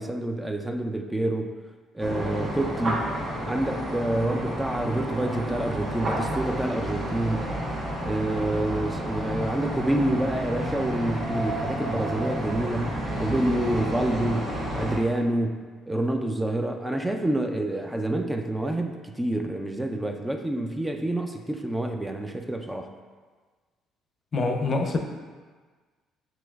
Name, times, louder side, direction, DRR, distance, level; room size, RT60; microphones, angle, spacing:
voice 1, 0.0-1.6 1.9-7.6 8.0-22.9, right 1 dB, 10° right, 4 dB, 0.4 m, -28 dB
sound 1, 2.0-15.0, equal, 55° right, 1.3 m, -31 dB
voice 2, 24.3-25.0, left 3 dB, 50° left, 4 dB, 0.5 m, -25 dB
6.8 x 3.0 x 2.3 m, 1.4 s
supercardioid pair, 65°, 0 cm